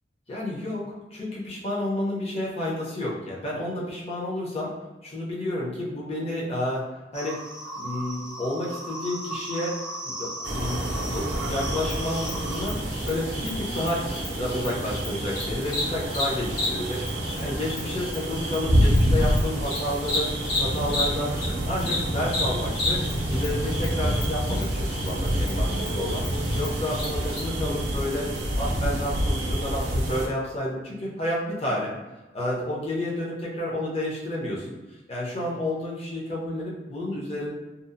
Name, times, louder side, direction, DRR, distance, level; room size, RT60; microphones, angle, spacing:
voice 1, 0.3-0.8 1.1-4.7 5.0-6.8 7.1-7.4 7.7-9.8 10.0-12.8 13.0-20.3 20.6-21.4 21.6-23.0 23.3-26.2 26.5-31.9 32.3-37.5, left 1 dB, 35° left, -4 dB, 0.6 m, -30 dB
sound 1, 7.1-12.8, right 1 dB, 5° right, 0.3 m, -36 dB
sound 2, 10.4-30.3, equal, 75° right, 0.5 m, -27 dB
Cricket, 11.8-21.5 21.8-27.4, left 2 dB, 75° left, 1.1 m, -33 dB
2.7 x 2.0 x 2.5 m, 1.1 s
head